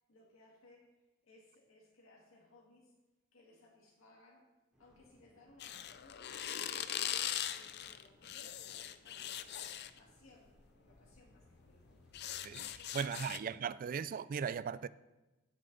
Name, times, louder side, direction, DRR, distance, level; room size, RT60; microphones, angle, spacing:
voice 1, 0.1-3.0 3.3-12.1 12.8-13.8, left 2 dB, 75° left, 1.9 m, -64 dB
sound 1, 4.7-12.8, equal, 5° right, 2.6 m, -69 dB
sound 2, 5.6-10.0 11.0-11.2 11.5-13.4, left 10 dB, 55° left, 0.5 m, -41 dB
voice 2, 12.9-14.9, right 7 dB, 45° right, 0.3 m, -37 dB
17.5 x 6.6 x 3.9 m
head